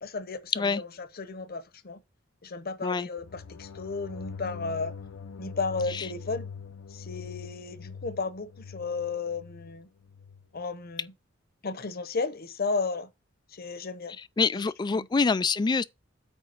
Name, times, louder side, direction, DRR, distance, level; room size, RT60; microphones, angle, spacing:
voice 1, 0.0-0.9 1.2-2.0 2.4-4.9 5.4-6.5 6.9-9.9 10.5-11.1 11.6-13.1 13.5-14.2 14.6-14.7 14.9-15.1, left 4 dB, 50° left, 0.9 m, -33 dB
sound 1, 3.2-10.5, left 6 dB, 90° left, 0.7 m, -43 dB
voice 2, 14.2-15.8, left 4 dB, 20° left, 0.3 m, -26 dB
8.6 x 3.4 x 6.5 m
head